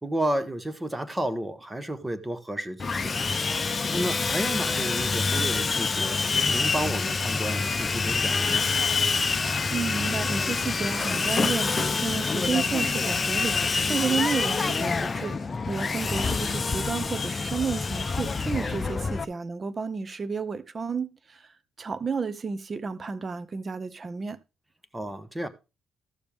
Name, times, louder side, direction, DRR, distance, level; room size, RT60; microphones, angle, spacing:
voice 1, 0.0-3.2 3.9-8.7 18.5-18.7 24.9-25.5, right 1 dB, 15° right, 1.2 m, -32 dB
Sawing, 2.8-19.2, left 4 dB, 35° left, 0.7 m, -26 dB
voice 2, 9.7-24.4, right 5 dB, 35° right, 0.7 m, -32 dB
14.0 x 6.8 x 3.5 m
cardioid pair, 90°, 0 cm